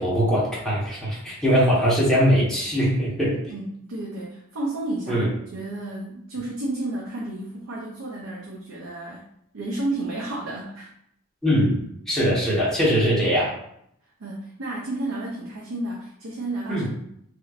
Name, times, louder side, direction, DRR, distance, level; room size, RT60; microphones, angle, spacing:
voice 1, 0.0-3.4 5.1-5.3 11.4-11.8 12.1-13.5 16.7-16.9, equal, ahead, -8 dB, 1.2 m, -21 dB
voice 2, 3.5-5.2 5.5-9.2 9.5-10.9 14.2-16.9, right 2 dB, 70° right, -4 dB, 0.6 m, -31 dB
3.2 x 3.0 x 2.4 m, 0.72 s
head